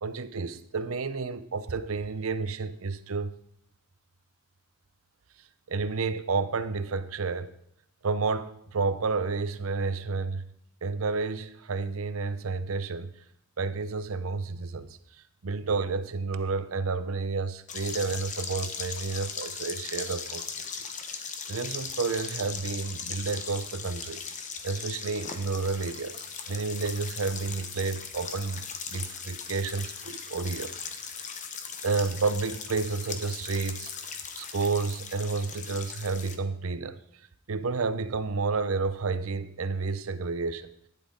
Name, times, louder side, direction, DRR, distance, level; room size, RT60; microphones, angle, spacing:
voice 1, 0.0-3.3 5.7-7.5 8.0-10.5 10.8-13.1 13.6-15.0 15.4-20.7 21.5-24.2 24.6-28.6 28.9-30.8 31.8-37.0 37.5-40.7, right 4 dB, 80° right, 13 dB, 0.7 m, -30 dB
sound 1, 17.7-36.4, left 6 dB, 35° left, 0.9 m, -38 dB
12.0 x 10.0 x 3.9 m, 0.74 s
head